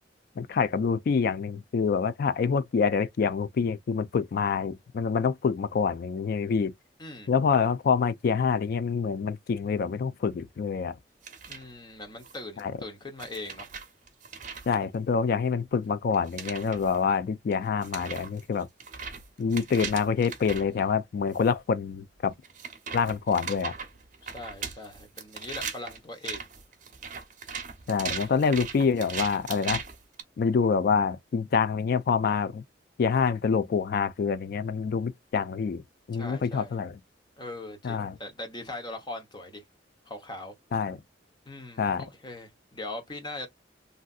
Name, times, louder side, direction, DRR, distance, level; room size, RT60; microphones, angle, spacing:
voice 1, 0.4-6.7 7.3-11.0 12.6-12.7 14.7-18.7 19.4-22.3 22.9-23.7 27.9-29.8 30.4-32.6 33.0-35.8 36.1-37.0 37.8-38.2 40.7-41.0 41.8-42.0, left 5 dB, 55° left, 0.3 m, -26 dB
sound 1, 11.2-11.7 12.2-12.6 13.2-14.7 16.1-17.0 17.5-17.6 17.8-20.7 21.3-21.5 22.4-30.2, right 6 dB, 45° right, 0.8 m, -38 dB
voice 2, 11.5-13.7 24.2-26.4 28.0-28.4 36.1-36.8 37.4-39.6 40.1-40.5 41.4-43.5, left 2 dB, 25° left, 0.9 m, -40 dB
3.2 x 2.6 x 2.3 m
head